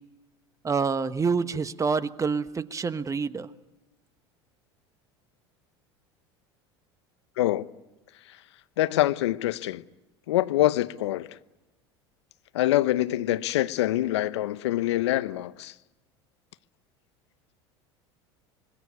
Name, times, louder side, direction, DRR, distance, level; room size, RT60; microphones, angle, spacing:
voice 1, 0.6-3.5, right 5 dB, 20° right, 1.3 m, -27 dB
voice 2, 7.4-7.7 8.8-9.8 10.3-11.3 12.5-15.7, left 15 dB, 80° left, 0.9 m, -25 dB
26.0 x 21.0 x 9.4 m
hypercardioid pair, 80°, 14 cm